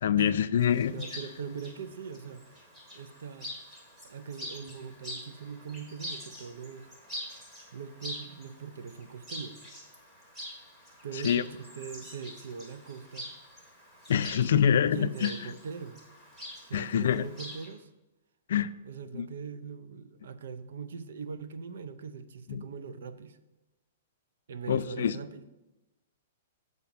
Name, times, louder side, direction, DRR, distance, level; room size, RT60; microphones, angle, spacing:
voice 1, 0.0-1.0 11.2-11.4 14.1-15.3 16.7-17.3 18.5-18.7 19.1-19.3 22.5-22.6 24.7-25.1, left 9 dB, 70° left, 15 dB, 0.3 m, -25 dB
Chirp tweet, 0.6-17.7, equal, 15° right, 1.5 m, -45 dB
voice 2, 0.9-2.6 2.9-3.5 4.0-6.9 7.7-9.6 11.0-13.3 14.9-16.0 16.6-17.9 18.8-23.4 24.5-25.4, right 6 dB, 75° right, 13 dB, 0.5 m, -41 dB
7.2 x 4.0 x 5.9 m, 1.0 s
hypercardioid pair, 165°, 0 cm